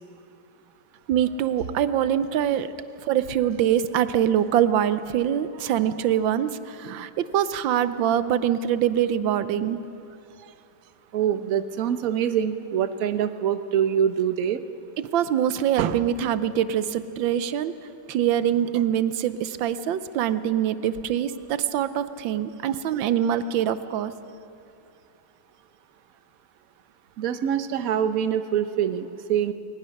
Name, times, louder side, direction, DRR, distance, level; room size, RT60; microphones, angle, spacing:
voice 1, 1.1-2.7 3.0-9.8 15.1-17.7 18.1-24.2, right 10 dB, 75° right, 13 dB, 1.4 m, -24 dB
voice 2, 11.1-14.6 27.2-29.5, right 9 dB, 55° right, 11 dB, 1.1 m, -25 dB
21.0 x 19.5 x 6.4 m, 2.7 s
omnidirectional pair, 2.1 m